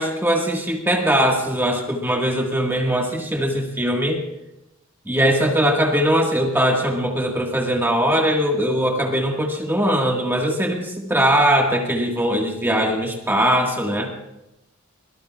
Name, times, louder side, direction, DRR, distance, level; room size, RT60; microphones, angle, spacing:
voice 1, 0.0-4.2 5.0-14.1, equal, 10° right, 1 dB, 1.7 m, -20 dB
22.5 x 18.5 x 2.4 m, 0.90 s
head